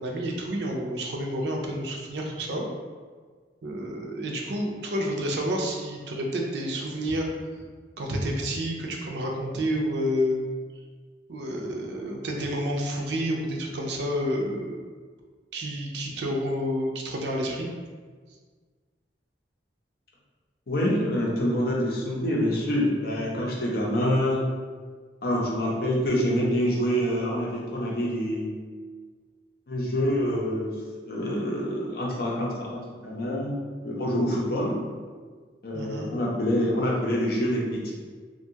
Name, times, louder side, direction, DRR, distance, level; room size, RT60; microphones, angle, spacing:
voice 1, 0.0-2.7 3.6-7.3 8.0-10.4 11.3-14.8 15.5-17.7 23.2-23.3 35.7-36.1, equal, 70° right, 0 dB, 0.4 m, -29 dB
voice 2, 20.7-24.4 25.2-28.5 29.7-30.7 31.0-33.6 33.8-34.8 35.6-37.9, equal, 60° left, -4 dB, 0.6 m, -26 dB
2.5 x 2.2 x 2.7 m, 1.5 s
head